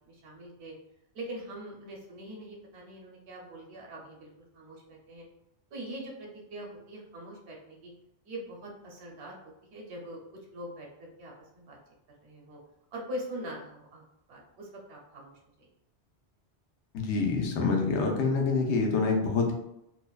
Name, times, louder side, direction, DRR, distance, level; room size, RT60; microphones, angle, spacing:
voice 1, 0.1-0.7 1.1-5.3 5.7-7.9 8.2-9.4 9.7-10.2 10.5-11.8 12.2-12.6 12.9-14.0 14.3-15.7, equal, 70° right, -1 dB, 0.9 m, -43 dB
voice 2, 16.9-19.5, left 4 dB, 80° left, 1 dB, 0.9 m, -26 dB
2.6 x 2.1 x 2.3 m, 0.82 s
omnidirectional pair, 1.2 m